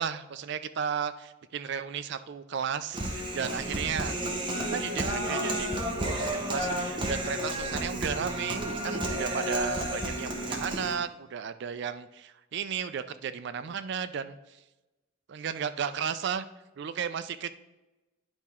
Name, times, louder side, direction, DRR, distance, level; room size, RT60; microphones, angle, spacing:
voice 1, 0.0-4.2 4.7-14.4 15.3-16.4 16.8-17.6, right 7 dB, 60° right, 12 dB, 0.4 m, -34 dB
Human voice, 2.9-10.9, right 1 dB, 25° right, 0.9 m, -32 dB
10.0 x 3.5 x 4.3 m, 1.1 s
head